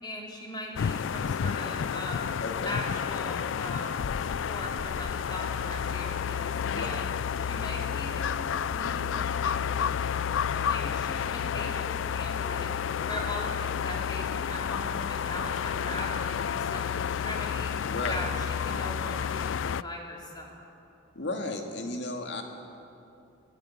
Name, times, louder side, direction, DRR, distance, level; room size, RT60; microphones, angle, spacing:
voice 1, 0.0-7.1 7.4-12.7 13.1-17.7 18.1-20.6, left 1 dB, 25° left, -1 dB, 3.2 m, -40 dB
sound 1, 0.8-19.8, left 7 dB, 80° left, 0.4 m, -30 dB
voice 2, 2.4-2.7 6.7-6.9 17.9-18.1 21.1-22.4, left 2 dB, 65° left, 3 dB, 2.4 m, -34 dB
22.5 x 15.0 x 8.9 m, 2.8 s
head